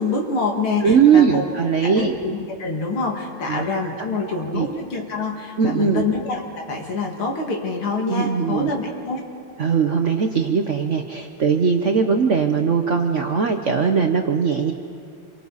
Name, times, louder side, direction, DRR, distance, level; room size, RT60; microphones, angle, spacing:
voice 1, 0.0-1.5 1.8-9.2, left 3 dB, 90° left, 1 dB, 3.0 m, -26 dB
voice 2, 0.8-2.1 3.5-3.6 4.3-4.7 5.6-6.0 8.1-8.7 9.6-14.7, right 6 dB, 60° right, 4 dB, 0.8 m, -19 dB
28.0 x 24.0 x 4.1 m, 2.5 s
omnidirectional pair, 2.3 m